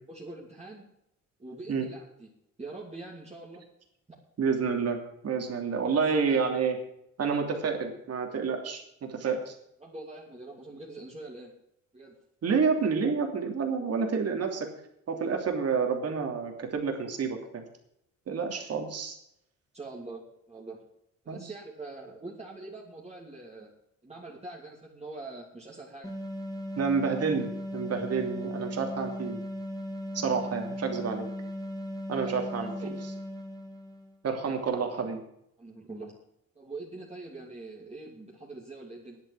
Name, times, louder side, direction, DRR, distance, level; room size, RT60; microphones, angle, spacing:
voice 1, 0.1-0.8 1.4-2.3 2.6-3.6 5.9-6.0 6.2-6.5 9.8-11.5 11.9-12.2 19.7-20.8 21.2-23.7 24.0-26.1 32.2-32.3 32.6-32.9 35.6-36.1 36.5-39.2, right 2 dB, 20° right, -4 dB, 2.9 m, -43 dB
voice 2, 4.4-6.8 7.2-9.6 12.4-14.7 15.1-17.6 18.3-19.2 21.3-21.5 26.8-29.4 30.1-31.3 32.1-32.7 34.2-35.2, right 5 dB, 55° right, 3 dB, 2.9 m, -29 dB
sound 1, 26.0-34.2, equal, 10° left, 2.5 m, -37 dB
10.5 x 8.5 x 8.4 m, 0.77 s
cardioid pair, 90°, 30 cm